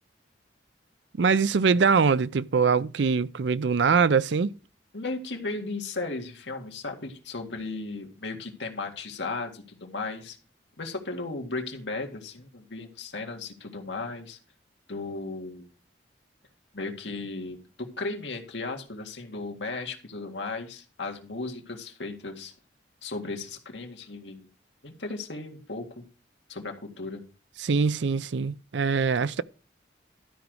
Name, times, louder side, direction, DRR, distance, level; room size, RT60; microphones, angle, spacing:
voice 1, 1.2-4.5 27.6-29.4, right 5 dB, 75° right, 0.5 m, -23 dB
voice 2, 4.9-10.4 10.8-14.4 14.9-15.7 16.7-22.5 23.0-24.5 24.8-26.1 26.5-27.2, left 3 dB, 75° left, 2.0 m, -35 dB
12.5 x 5.2 x 6.3 m
head